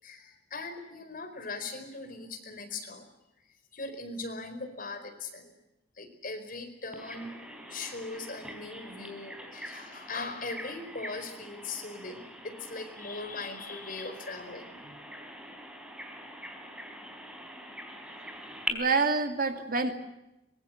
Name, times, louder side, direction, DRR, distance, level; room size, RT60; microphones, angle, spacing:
voice 1, 0.0-3.0 3.7-5.5 5.9-15.0, left 3 dB, 50° left, 6 dB, 4.9 m, -40 dB
Bird vocalization bird call bird song, 6.9-18.7, equal, 5° right, 3.9 m, -43 dB
voice 2, 18.7-20.0, right 4 dB, 50° right, 6 dB, 2.5 m, -27 dB
24.5 x 22.0 x 7.9 m, 0.93 s
head